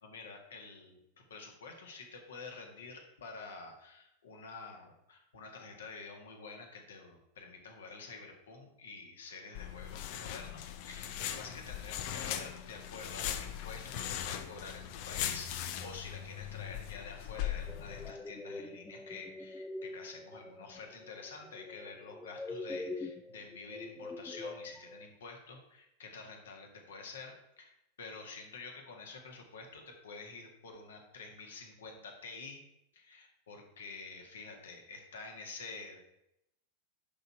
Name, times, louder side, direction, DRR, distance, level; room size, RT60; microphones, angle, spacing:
voice 1, 0.0-32.6 32.9-36.0, left 4 dB, 65° left, 2 dB, 1.7 m, -48 dB
sound 1, 9.5-18.1, left 10 dB, 45° left, 0.6 m, -39 dB
sound 2, 17.7-25.1, left 2 dB, 10° left, 0.6 m, -44 dB
11.0 x 4.1 x 4.8 m, 0.83 s
figure-of-eight pair, 90°, 0 cm